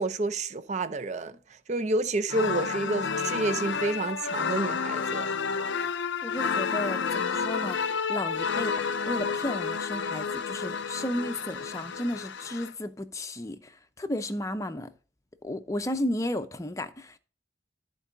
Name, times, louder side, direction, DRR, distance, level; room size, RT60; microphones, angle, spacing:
voice 1, 0.0-5.3, right 2 dB, 40° right, 0.5 m, -29 dB
sound 1, 2.3-12.7, left 5 dB, 75° left, 0.5 m, -30 dB
voice 2, 6.2-14.9 15.4-17.2, left 1 dB, 15° left, 0.6 m, -33 dB
13.5 x 4.6 x 4.0 m
head